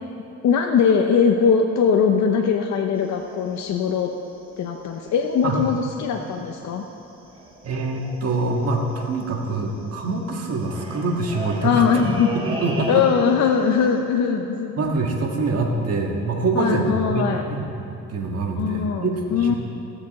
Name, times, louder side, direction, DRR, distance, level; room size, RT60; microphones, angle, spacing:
voice 1, 0.4-4.1 4.6-6.8 11.6-12.3 12.9-14.8 16.5-17.5 18.5-19.5, left 6 dB, 65° left, 4 dB, 0.7 m, -21 dB
sound 1, 2.9-5.3 5.5-5.8 6.1-6.6 6.8-6.9 7.1-13.4 13.7-14.0, right 1 dB, 15° right, 2.0 m, -37 dB
voice 2, 7.6-12.0 12.4-13.0 14.8-19.1 19.4-19.6, right 3 dB, 55° right, 1 dB, 1.7 m, -25 dB
16.5 x 6.9 x 4.2 m, 2.9 s
cardioid pair, 90°, 30 cm